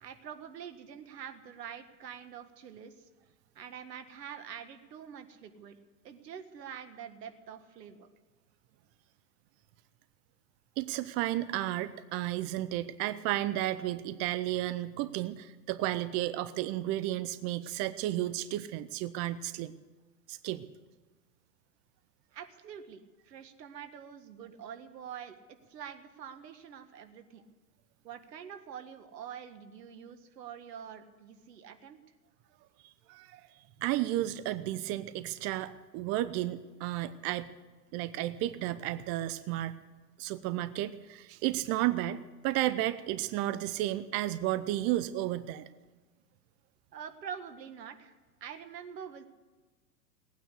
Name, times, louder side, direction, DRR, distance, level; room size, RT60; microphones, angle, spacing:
voice 1, 0.0-3.1 3.6-5.8 6.0-8.1 22.3-27.4 28.0-32.0 46.9-48.1 48.4-49.3, right 8 dB, 75° right, 9 dB, 1.8 m, -45 dB
voice 2, 10.8-19.7 20.3-20.7 33.1-33.4 33.8-37.5 37.9-39.7 40.2-45.7, right 14 dB, 30° right, 14 dB, 0.6 m, -33 dB
18.5 x 9.4 x 8.2 m, 1.3 s
hypercardioid pair, 110°, 49 cm